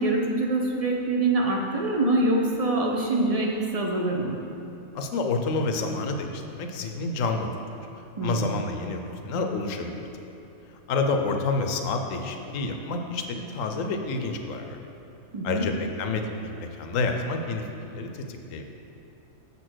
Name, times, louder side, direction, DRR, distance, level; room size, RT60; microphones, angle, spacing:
voice 1, 0.0-4.4 8.2-8.6 15.3-15.7, right 2 dB, 40° right, -1 dB, 0.5 m, -25 dB
voice 2, 4.9-7.5 8.2-10.1 10.9-14.8 15.4-18.6, left 3 dB, 70° left, 5 dB, 1.0 m, -29 dB
7.0 x 4.2 x 6.2 m, 2.9 s
omnidirectional pair, 1.4 m